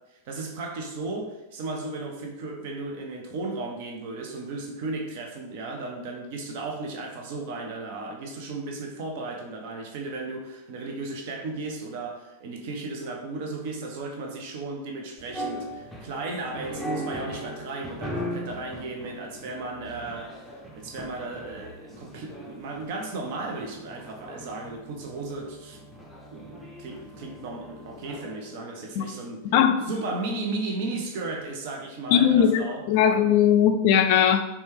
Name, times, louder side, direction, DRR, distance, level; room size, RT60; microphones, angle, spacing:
voice 1, 0.3-20.3 20.7-25.8 26.3-29.5 29.9-32.8, right 3 dB, 50° right, 2 dB, 0.6 m, -35 dB
sound 1, 15.2-28.5, equal, ahead, 0.6 m, -39 dB
voice 2, 32.1-34.4, left 9 dB, 45° left, 7 dB, 0.3 m, -19 dB
4.1 x 2.2 x 3.5 m, 0.99 s
figure-of-eight pair, 90°, 0 cm